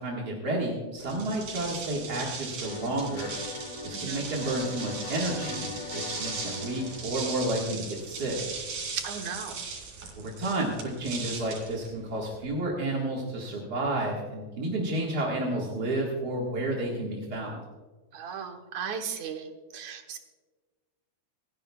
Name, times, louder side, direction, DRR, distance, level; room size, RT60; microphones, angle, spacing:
voice 1, 0.0-3.3 3.8-8.4 10.2-17.6, right 1 dB, 40° right, -3 dB, 1.9 m, -31 dB
sound 1, 1.0-12.5, right 5 dB, 90° right, 4.1 m, -38 dB
sound 2, 2.6-8.4, left 5 dB, 65° left, 2.3 m, -41 dB
voice 2, 3.9-4.2 9.0-9.6 18.1-19.5 19.7-20.2, right 7 dB, 70° right, 5 dB, 2.4 m, -36 dB
27.5 x 10.5 x 2.3 m, 1.3 s
omnidirectional pair, 3.5 m